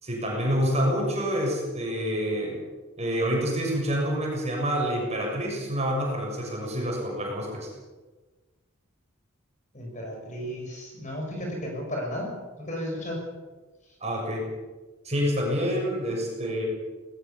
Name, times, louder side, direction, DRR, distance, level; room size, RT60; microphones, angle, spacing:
voice 1, 0.0-2.6 3.0-7.7 14.0-14.5 15.0-16.6, equal, 30° right, -1 dB, 6.8 m, -27 dB
voice 2, 9.7-12.3 12.7-13.2, equal, 35° left, 1 dB, 6.6 m, -33 dB
20.5 x 19.5 x 7.2 m, 1.2 s
head